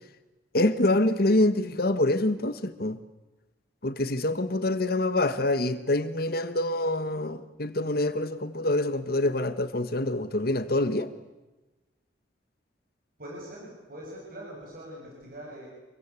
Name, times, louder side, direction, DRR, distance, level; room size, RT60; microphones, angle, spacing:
voice 1, 0.5-3.0 3.8-11.1, left 1 dB, 55° left, 1.4 m, -26 dB
voice 2, 13.2-15.7, right 1 dB, 50° right, 7.4 m, -42 dB
27.5 x 23.5 x 8.4 m
head